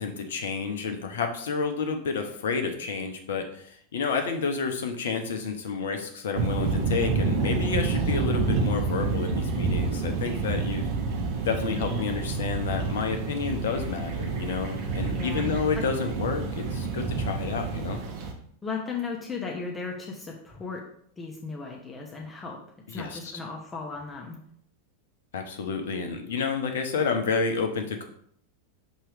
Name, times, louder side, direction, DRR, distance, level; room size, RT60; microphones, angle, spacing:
voice 1, 0.0-10.9 11.4-18.0 22.9-23.4 25.3-28.1, left 5 dB, 60° left, 6 dB, 0.8 m, -30 dB
sound 1, 6.3-18.3, right 4 dB, 45° right, 1.0 m, -28 dB
voice 2, 11.7-12.0 15.1-15.8 18.6-20.8 21.2-22.6 22.9-24.4, left 4 dB, 15° left, -2 dB, 1.0 m, -36 dB
6.5 x 3.1 x 4.8 m, 0.66 s
figure-of-eight pair, 90°, 0 cm